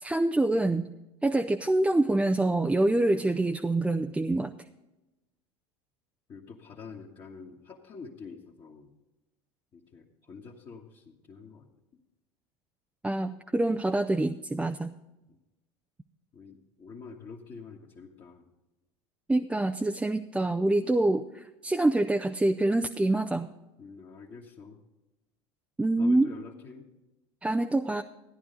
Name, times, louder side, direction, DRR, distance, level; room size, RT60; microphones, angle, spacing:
voice 1, 0.0-0.9 1.2-4.5 13.0-14.9 19.3-23.5 25.8-26.3 27.4-28.0, right 2 dB, 10° right, 5 dB, 0.5 m, -26 dB
voice 2, 6.3-8.9 9.7-11.7 15.3-15.4 16.3-18.5 23.8-24.8 26.0-26.9, left 5 dB, 35° left, -4 dB, 1.5 m, -46 dB
14.5 x 10.0 x 3.9 m, 1.0 s
hypercardioid pair, 85°, 15 cm